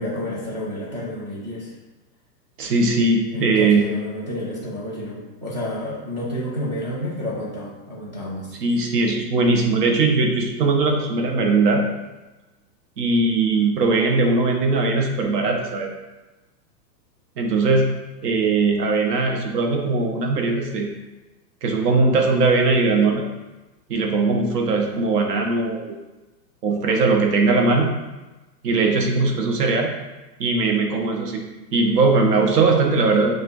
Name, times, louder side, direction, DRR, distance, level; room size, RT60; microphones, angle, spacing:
voice 1, 0.0-1.8 3.3-8.6, left 1 dB, 30° right, -6 dB, 0.4 m, -30 dB
voice 2, 2.6-3.8 8.6-11.8 13.0-15.9 17.4-17.9 18.2-20.9 21.6-23.3 23.9-26.0 26.6-27.9 28.6-29.9 30.4-31.4 31.7-33.4, right 3 dB, 70° right, 2 dB, 1.0 m, -20 dB
6.4 x 2.5 x 2.5 m, 1.1 s
hypercardioid pair, 160°, 50 cm